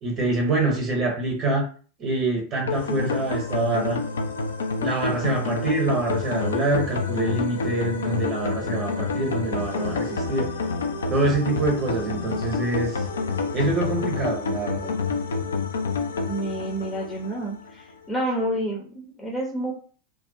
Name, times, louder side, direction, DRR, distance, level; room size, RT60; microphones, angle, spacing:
voice 1, 0.0-1.7 2.0-4.0 4.8-10.5 11.1-13.1 13.5-15.0, right 2 dB, 30° right, -2 dB, 0.8 m, -25 dB
sound 1, 2.7-17.7, left 4 dB, 65° left, 0.3 m, -28 dB
voice 2, 16.2-19.7, right 1 dB, 15° left, -2 dB, 0.6 m, -29 dB
2.3 x 2.1 x 2.7 m, 0.40 s
figure-of-eight pair, 90°, 0 cm